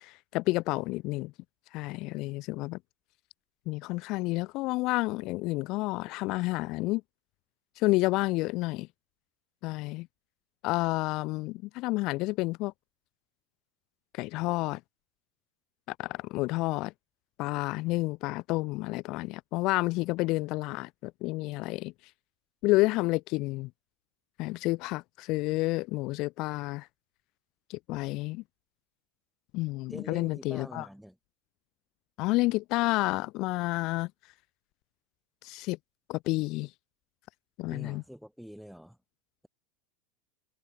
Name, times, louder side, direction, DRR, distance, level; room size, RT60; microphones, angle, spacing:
voice 1, 0.0-1.3 1.7-2.8 3.7-7.0 7.8-8.9 9.6-10.1 10.6-12.7 14.1-14.8 16.0-16.9 17.4-21.9 22.6-23.7 24.4-26.9 27.7-28.4 29.5-30.9 32.2-34.1 35.4-35.8 36.1-36.7 37.6-38.0, left 21 dB, 55° left, 1.0 m, -30 dB
voice 2, 29.9-31.2 37.7-39.0, equal, ahead, 5.0 m, -45 dB
hypercardioid pair, 90°, 0 cm